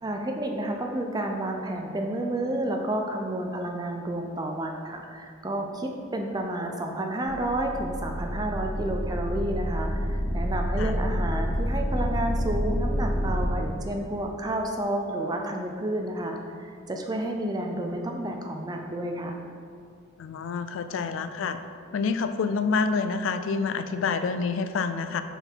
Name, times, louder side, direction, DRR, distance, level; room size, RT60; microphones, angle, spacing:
voice 1, 0.0-19.4, right 1 dB, 20° right, 2 dB, 0.4 m, -30 dB
sound 1, 7.2-13.5, equal, ahead, 1.4 m, -28 dB
voice 2, 20.2-21.6 21.9-25.2, left 4 dB, 80° left, 10 dB, 0.3 m, -27 dB
5.4 x 4.0 x 4.5 m, 2.3 s
head